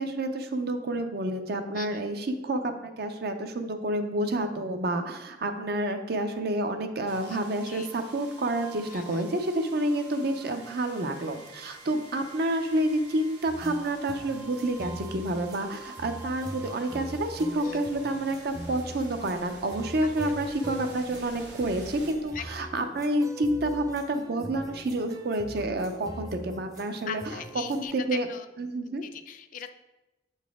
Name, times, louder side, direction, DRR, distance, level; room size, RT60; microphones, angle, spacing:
voice 1, 0.0-27.2 27.7-28.3 28.6-29.0, right 1 dB, 60° right, 7 dB, 0.6 m, -29 dB
sound 1, 7.1-22.9, right 2 dB, 80° right, 1.0 m, -49 dB
voice 2, 7.3-7.9 8.9-9.2 17.6-17.8 20.3-20.4 22.3-22.7 27.1-28.5 29.0-29.7, left 8 dB, 50° left, 9 dB, 0.4 m, -40 dB
sound 2, 13.5-27.9, equal, 20° right, 0.6 m, -42 dB
7.4 x 4.1 x 3.6 m, 1.0 s
head